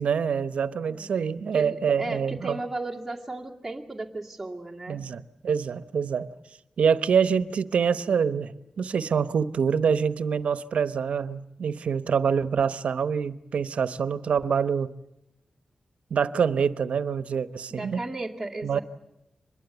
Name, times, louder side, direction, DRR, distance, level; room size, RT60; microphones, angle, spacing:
voice 1, 0.0-2.6 4.9-6.3 6.8-14.9 16.1-18.0 18.6-18.8, right 6 dB, 85° right, 14 dB, 0.9 m, -25 dB
voice 2, 1.5-5.0 17.7-18.8, right 2 dB, 5° right, -3 dB, 2.3 m, -35 dB
25.0 x 21.5 x 8.0 m, 0.88 s
wide cardioid pair, 130°, 2 cm